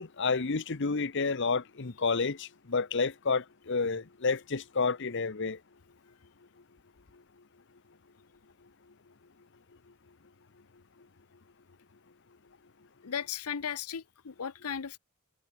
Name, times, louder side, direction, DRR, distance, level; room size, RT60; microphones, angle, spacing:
voice 1, 0.0-5.6, left 4 dB, 55° left, 0.9 m, -30 dB
voice 2, 13.0-15.0, left 7 dB, 90° left, 0.7 m, -36 dB
head